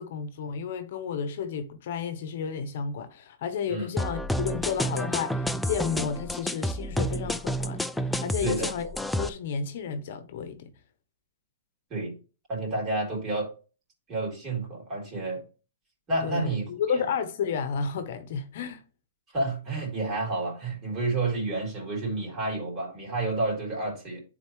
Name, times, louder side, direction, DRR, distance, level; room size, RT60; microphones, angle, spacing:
voice 1, 0.0-8.9 9.2-10.7 16.2-18.8, left 6 dB, 60° left, 0.9 m, -32 dB
sound 1, 4.0-9.3, equal, 5° left, 0.4 m, -30 dB
voice 2, 8.4-8.7 11.9-12.1 12.5-13.5 14.1-15.4 16.1-16.7 16.9-17.1 19.3-24.2, right 2 dB, 25° right, 3.8 m, -30 dB
9.7 x 4.0 x 3.1 m
hypercardioid pair, 135°, 0 cm